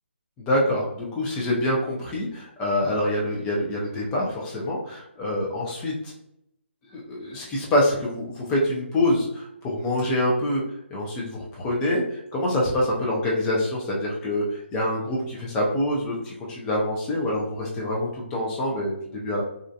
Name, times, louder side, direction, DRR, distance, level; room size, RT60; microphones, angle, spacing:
voice 1, 0.4-5.9 6.9-10.6 10.9-19.4, left 1 dB, 10° left, -3 dB, 0.3 m, -26 dB
2.4 x 2.1 x 2.6 m, 0.81 s
hypercardioid pair, 165°, 7 cm